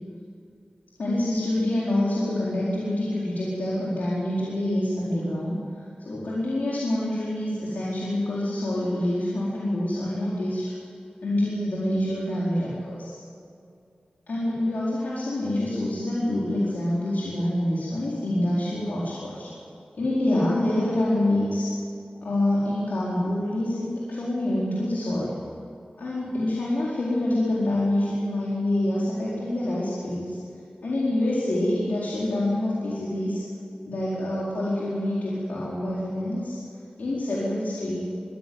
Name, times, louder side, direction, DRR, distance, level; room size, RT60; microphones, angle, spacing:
voice 1, 1.0-10.7 11.2-13.2 14.3-19.5 19.9-21.7 22.2-25.3 26.0-30.4 30.8-33.4 33.9-36.6 37.0-38.0, left 1 dB, 90° left, -7 dB, 4.2 m, -26 dB
22.5 x 15.5 x 9.5 m, 2.4 s
wide cardioid pair, 90°, 3 cm